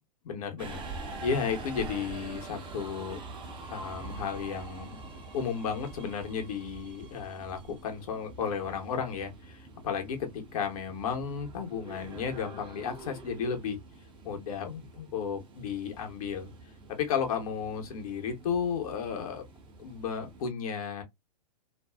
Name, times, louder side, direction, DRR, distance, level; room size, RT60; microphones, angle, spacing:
voice 1, 0.2-3.2 3.7-13.8 14.2-16.5 16.9-19.4 19.8-21.0, left 6 dB, 60° left, 1.1 m, -33 dB
Subway metro underground, 0.6-20.5, right 3 dB, 25° right, 0.8 m, -45 dB
2.6 x 2.3 x 2.3 m
hypercardioid pair, 110°, 21 cm